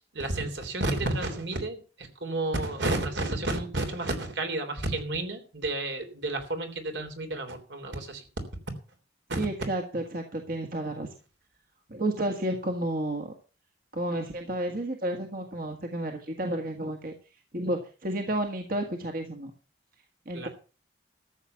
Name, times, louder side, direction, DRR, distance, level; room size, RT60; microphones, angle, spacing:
voice 1, 0.0-8.2 9.3-9.5 20.3-20.5, right 2 dB, 75° right, 6 dB, 3.4 m, -31 dB
voice 2, 9.4-11.1 11.9-13.3 13.9-17.1 17.5-19.5 20.3-20.5, right 1 dB, 50° right, 3 dB, 1.7 m, -31 dB
13.5 x 7.5 x 7.0 m, 0.36 s
head